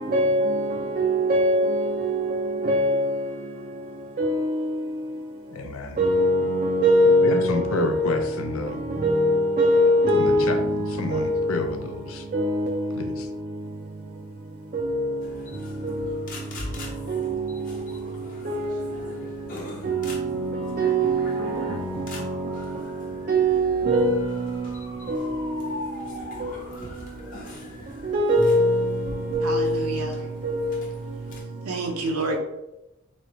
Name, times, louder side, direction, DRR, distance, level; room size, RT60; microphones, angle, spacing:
voice 1, 0.1-0.5 1.0-1.7 2.7-3.1 4.2-4.5 6.0-8.1 9.0-10.6 11.1-11.3 12.3-12.7 14.7-15.0 18.5-18.6 19.9-20.0 20.8-21.3 23.3-24.4 25.1-25.2 28.1-28.8 29.3-29.7 30.4-30.7, equal, 35° right, 0.4 m, -21 dB
voice 2, 5.5-6.0 7.2-8.8 10.1-12.3 13.0-13.3, left 3 dB, 70° left, 0.5 m, -30 dB
sound 1, 15.2-31.4, left 1 dB, 40° left, 0.7 m, -41 dB
voice 3, 29.4-30.3 31.7-32.4, right 2 dB, 85° right, 0.8 m, -29 dB
3.8 x 3.1 x 3.0 m
head